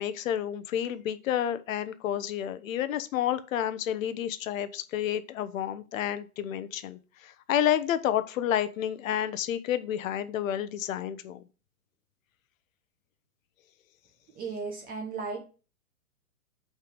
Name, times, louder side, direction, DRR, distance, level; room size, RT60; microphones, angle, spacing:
voice 1, 0.0-11.4, left 10 dB, 60° left, 12 dB, 0.8 m, -30 dB
voice 2, 14.3-15.4, right 4 dB, 20° right, 2 dB, 0.8 m, -35 dB
5.6 x 3.4 x 5.1 m, 0.35 s
hypercardioid pair, 130°, 46 cm